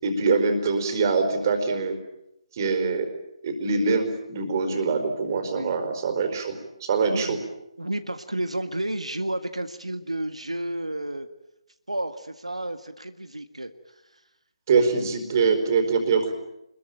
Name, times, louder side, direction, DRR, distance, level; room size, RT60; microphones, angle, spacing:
voice 1, 0.0-2.0 2.5-3.1 3.4-7.4 14.7-16.3, right 4 dB, 35° right, 7 dB, 4.7 m, -24 dB
voice 2, 7.0-7.4 7.8-11.3 11.9-13.7, right 1 dB, 80° right, 9 dB, 1.7 m, -31 dB
26.0 x 22.0 x 9.1 m, 0.87 s
figure-of-eight pair, 145°, 3 cm